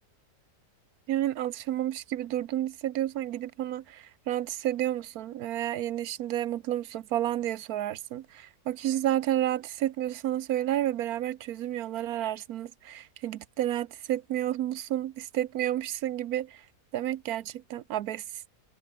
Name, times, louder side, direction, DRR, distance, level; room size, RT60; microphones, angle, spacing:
voice 1, 1.1-16.7 16.9-18.4, right 12 dB, 70° right, 1.1 m, -31 dB
omnidirectional pair, 1.7 m